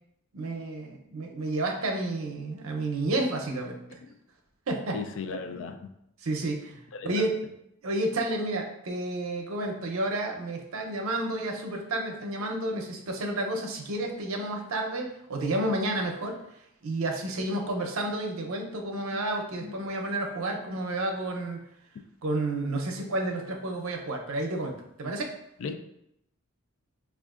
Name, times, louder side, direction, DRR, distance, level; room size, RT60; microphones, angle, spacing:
voice 1, 0.3-4.0 4.7-5.0 6.2-7.4 7.8-16.4 16.8-21.6 22.2-25.3, right 2 dB, 70° right, 2 dB, 0.6 m, -31 dB
voice 2, 4.9-5.9 6.9-7.3 19.1-19.2 19.6-19.7 25.6-25.8, left 4 dB, 60° left, 8 dB, 0.3 m, -37 dB
5.1 x 2.4 x 2.4 m, 0.79 s
head